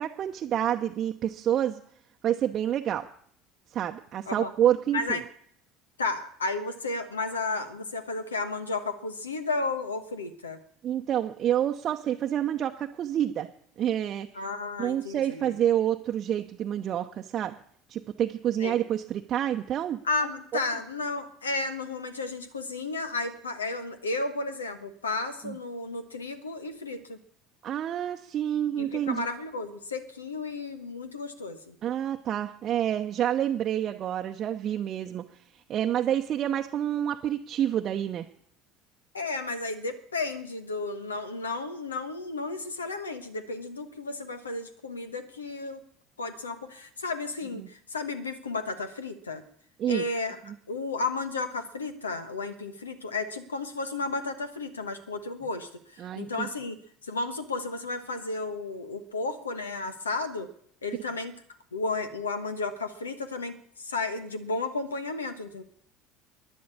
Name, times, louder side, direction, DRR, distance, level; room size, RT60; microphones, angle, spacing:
voice 1, 0.0-1.8 2.2-3.1 3.7-5.2 10.8-13.5 13.8-14.3 14.8-17.5 17.9-20.0 20.5-20.6 25.4-25.6 27.6-29.3 31.8-35.2 35.7-38.3 47.6-47.7 49.8-50.0 56.0-56.5, right 10 dB, 40° right, 3 dB, 0.8 m, -28 dB
voice 2, 6.0-10.6 14.3-15.6 18.6-18.8 20.0-27.2 28.8-31.7 39.1-45.8 46.2-49.4 49.9-50.4 50.7-56.7 57.0-60.5 60.8-61.3 61.7-65.6, left 3 dB, 80° left, 10 dB, 1.2 m, -33 dB
12.0 x 10.5 x 8.5 m, 0.63 s
figure-of-eight pair, 65°, 0 cm